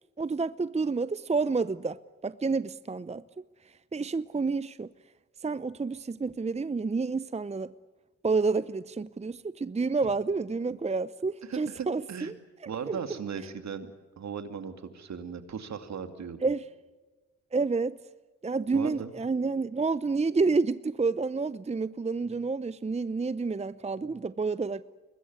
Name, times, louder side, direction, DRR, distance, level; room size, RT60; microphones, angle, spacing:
voice 1, 0.2-3.2 3.9-4.9 5.4-7.7 8.2-12.4 12.9-13.0 16.4-16.6 17.5-18.0 18.4-24.8, right 4 dB, 20° right, 0.7 m, -29 dB
voice 2, 11.4-12.3 12.7-13.9 14.2-16.4 18.7-19.1, right 6 dB, 65° right, 2.6 m, -37 dB
24.0 x 21.0 x 9.6 m
hypercardioid pair, 40°, 30 cm